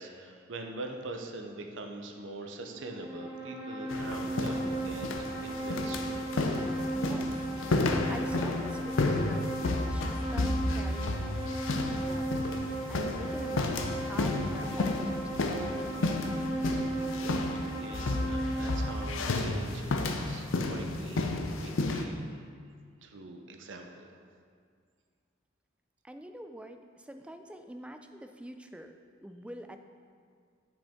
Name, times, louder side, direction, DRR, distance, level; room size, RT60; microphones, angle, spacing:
voice 1, 0.0-5.1 5.4-6.2 17.5-22.2 23.0-24.2, right 2 dB, 70° right, 4 dB, 0.6 m, -43 dB
sound 1, 2.7-19.0, right 1 dB, 30° right, 0.9 m, -36 dB
sound 2, 3.9-22.0, left 2 dB, 80° left, 0.5 m, -32 dB
voice 2, 6.9-7.4 8.1-12.5 12.9-16.0 26.0-28.9 29.2-29.8, right 1 dB, 5° right, 6 dB, 0.3 m, -46 dB
8.7 x 5.2 x 3.5 m, 2.1 s
head